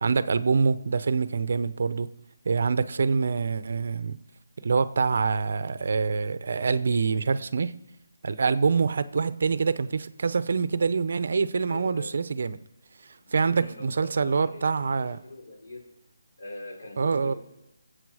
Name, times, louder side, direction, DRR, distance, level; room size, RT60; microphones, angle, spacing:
voice 1, 0.0-2.1 2.4-4.2 4.6-7.7 8.2-12.6 13.0-15.2 17.0-17.3, right 5 dB, 50° right, 0.6 m, -25 dB
voice 2, 11.7-12.1 13.2-15.9 16.4-17.4, left 2 dB, 70° left, 4.4 m, -42 dB
21.0 x 7.9 x 4.8 m
hypercardioid pair, 170°, 0 cm